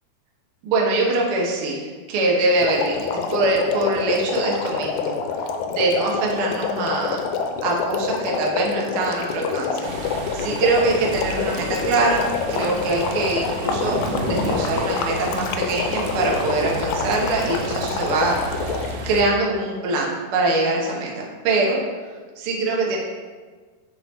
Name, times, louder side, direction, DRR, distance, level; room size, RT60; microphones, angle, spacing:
voice 1, 0.6-5.2 5.7-7.2 7.6-18.8 19.0-21.8 22.4-23.0, right 2 dB, 65° right, -2 dB, 1.4 m, -23 dB
sound 1, 2.6-19.1, left 5 dB, 80° left, 1.8 m, -27 dB
sound 2, 9.8-19.2, right 1 dB, 90° right, 2.3 m, -32 dB
8.6 x 3.8 x 3.0 m, 1.4 s
omnidirectional pair, 3.7 m